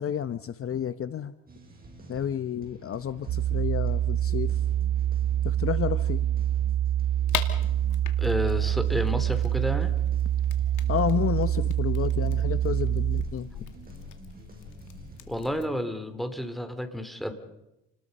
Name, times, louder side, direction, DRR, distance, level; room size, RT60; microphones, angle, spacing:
voice 1, 0.0-1.3 2.1-4.6 5.4-6.3 10.9-13.5, left 9 dB, 45° left, 12 dB, 0.9 m, -30 dB
sound 1, 1.5-15.6, right 3 dB, 30° right, 6.7 m, -49 dB
sound 2, 3.3-13.2, right 11 dB, 75° right, 0.8 m, -26 dB
sound 3, 7.3-15.7, left 10 dB, 85° left, 2.3 m, -41 dB
voice 2, 8.2-9.9 15.3-17.3, equal, ahead, 8 dB, 3.3 m, -30 dB
29.5 x 20.5 x 5.5 m, 0.89 s
cardioid pair, 90°, 30 cm